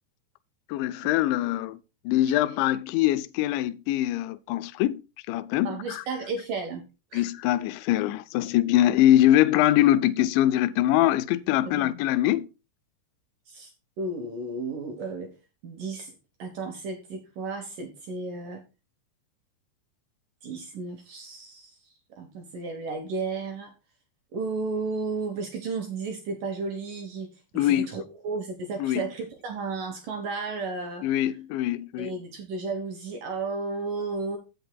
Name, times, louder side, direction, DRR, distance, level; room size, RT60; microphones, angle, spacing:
voice 1, 0.7-1.8 2.1-5.0 5.3-6.0 7.1-12.5 27.5-27.9 28.8-29.1 31.0-32.1, left 13 dB, 90° left, 2.9 m, -23 dB
voice 2, 5.6-6.8 7.1-7.3 11.7-11.8 13.5-13.7 14.0-15.3 15.6-16.1 16.4-18.6 20.4-23.7 24.3-27.3 27.5-31.0 32.0-34.4, right 3 dB, 70° right, 2.1 m, -33 dB
16.0 x 6.9 x 2.2 m
omnidirectional pair, 5.1 m